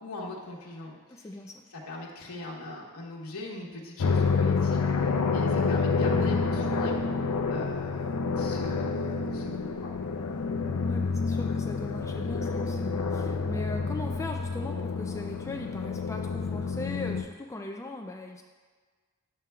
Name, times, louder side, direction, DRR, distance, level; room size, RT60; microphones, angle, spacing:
voice 1, 0.0-1.3 1.7-6.9 7.5-9.9, left 2 dB, 70° left, -4 dB, 1.2 m, -40 dB
voice 2, 1.1-1.6 10.8-18.4, left 2 dB, 15° left, 2 dB, 0.3 m, -39 dB
sound 1, 4.0-17.2, left 4 dB, 85° left, 0.5 m, -28 dB
11.0 x 7.4 x 2.3 m, 1.5 s
head